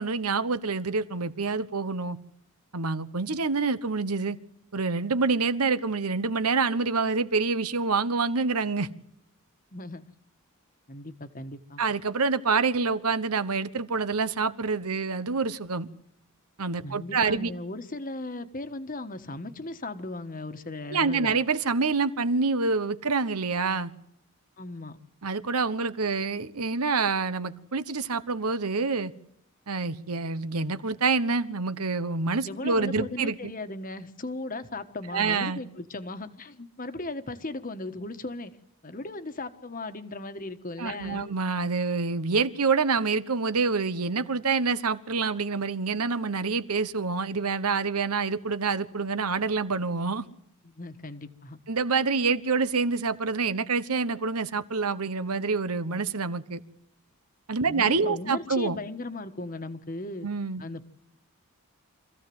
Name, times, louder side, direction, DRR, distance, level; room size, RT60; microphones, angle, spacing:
voice 1, 0.0-2.2 2.7-4.4 4.7-8.9 11.8-15.9 16.6-17.5 20.9-23.9 25.2-29.1 29.7-33.5 35.1-35.6 40.8-50.2 51.7-56.6 57.5-58.8 60.2-60.6, right 4 dB, 85° right, 13 dB, 1.2 m, -27 dB
voice 2, 9.7-10.0 10.9-11.8 16.8-21.4 24.6-25.0 32.4-38.5 38.8-41.3 50.6-51.6 57.6-60.3 60.6-60.9, left 2 dB, 40° left, 9 dB, 1.4 m, -37 dB
25.0 x 15.0 x 7.9 m, 0.77 s
head